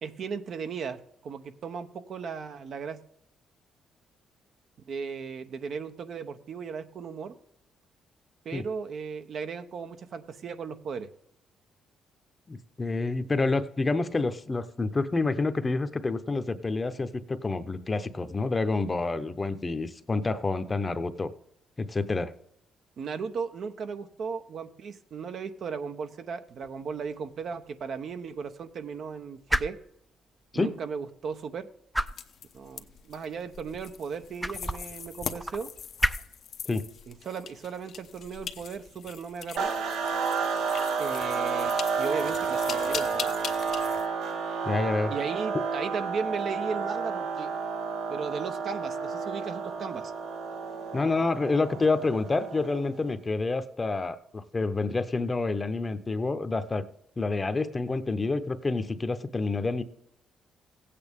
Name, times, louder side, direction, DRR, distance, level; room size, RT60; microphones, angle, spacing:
voice 1, 0.0-3.0 4.9-7.4 8.4-11.1 23.0-29.8 30.5-31.7 32.5-35.7 37.1-39.7 41.0-43.3 45.1-47.5 48.1-50.1, right 5 dB, 60° right, 8 dB, 0.9 m, -36 dB
voice 2, 12.5-21.3 21.8-22.3 30.5-30.7 36.7-36.8 44.6-45.1 50.9-56.8 57.2-59.8, left 3 dB, 25° left, 11 dB, 0.8 m, -28 dB
sound 1, 26.5-40.0, equal, 5° right, 0.5 m, -37 dB
sound 2, 32.1-44.1, left 7 dB, 60° left, 0.8 m, -41 dB
sound 3, 39.6-53.0, right 5 dB, 90° right, 1.4 m, -31 dB
16.0 x 8.5 x 3.6 m, 0.74 s
cardioid pair, 90°, 0 cm